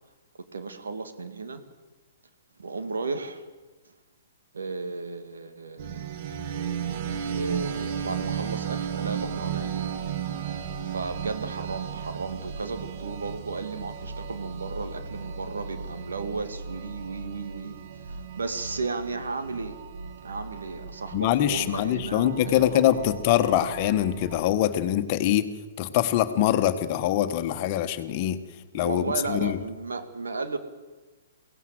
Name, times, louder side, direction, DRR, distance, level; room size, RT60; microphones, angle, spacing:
voice 1, 0.5-1.6 2.6-3.5 3.9-4.0 4.5-5.9 7.3-9.7 10.9-19.8 20.2-23.1 28.7-30.6, right 4 dB, 80° right, 8 dB, 2.5 m, -34 dB
sound 1, 5.8-24.4, right 7 dB, 45° right, 1.8 m, -35 dB
voice 2, 21.1-25.5 25.8-28.4 28.7-29.6, left 12 dB, 40° left, 10 dB, 1.5 m, -24 dB
23.0 x 17.0 x 7.9 m, 1.3 s
hypercardioid pair, 125°, 0 cm